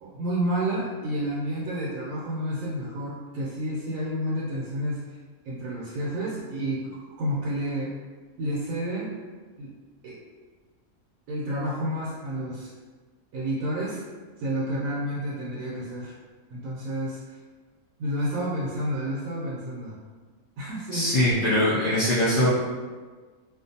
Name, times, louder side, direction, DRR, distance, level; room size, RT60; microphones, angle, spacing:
voice 1, 0.0-5.0 5.4-7.9 8.4-9.2 9.6-9.7 10.0-10.2 11.3-12.7 13.3-14.0 14.4-16.1 16.5-17.2 18.0-20.0 20.6-21.2, right 1 dB, 75° right, -7 dB, 1.0 m, -30 dB
voice 2, 20.9-22.5, left 1 dB, 65° left, -9 dB, 0.5 m, -22 dB
2.4 x 2.2 x 2.6 m, 1.4 s
omnidirectional pair, 1.5 m